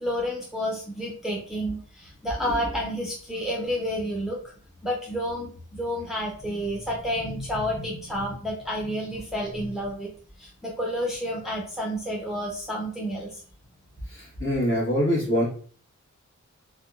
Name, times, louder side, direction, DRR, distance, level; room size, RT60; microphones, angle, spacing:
voice 1, 0.0-4.4 4.8-10.1 10.4-13.4, equal, ahead, -3 dB, 0.6 m, -30 dB
voice 2, 14.1-15.5, equal, 40° left, -4 dB, 1.3 m, -24 dB
3.5 x 2.2 x 2.3 m, 0.43 s
wide cardioid pair, 105°, 30 cm